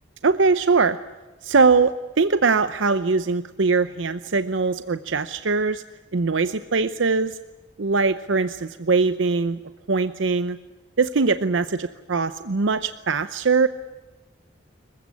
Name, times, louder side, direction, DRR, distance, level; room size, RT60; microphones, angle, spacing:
voice 1, 0.2-1.0 1.4-5.8 6.1-7.4 7.8-9.6 9.9-10.6 11.0-13.7, right 4 dB, 85° right, 12 dB, 0.8 m, -21 dB
27.0 x 15.5 x 9.9 m, 1.2 s
head